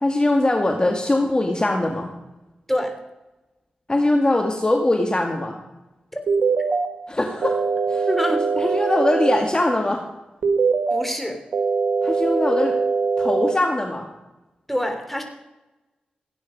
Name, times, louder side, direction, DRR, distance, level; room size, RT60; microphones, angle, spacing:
voice 1, 0.0-2.1 3.9-5.5 7.1-7.6 7.9-8.1 8.5-10.0 12.0-12.8 13.2-14.1, left 1 dB, 30° left, 3 dB, 2.1 m, -21 dB
sound 1, 6.3-6.9 7.4-9.4 10.4-11.0 11.5-13.5, right 5 dB, 80° right, 1.7 m, -22 dB
voice 2, 8.1-8.4 10.9-11.4 14.7-15.2, equal, 5° left, 4 dB, 3.6 m, -25 dB
17.0 x 9.4 x 5.3 m, 1.0 s
cardioid pair, 40°, 3 cm